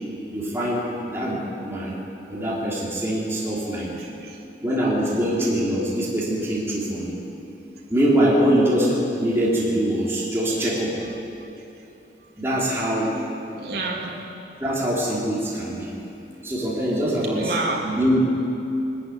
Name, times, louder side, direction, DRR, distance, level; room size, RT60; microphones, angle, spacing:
voice 1, 0.3-1.9 2.2-3.9 4.6-7.2 7.9-11.0 12.4-13.2 14.6-15.9 16.4-17.6 17.8-18.2, equal, 15° right, -6 dB, 3.3 m, -23 dB
voice 2, 3.8-4.4 5.0-5.5 13.5-14.1 17.2-17.8, right 3 dB, 60° right, -2 dB, 2.5 m, -30 dB
21.0 x 14.0 x 9.4 m, 2.9 s
head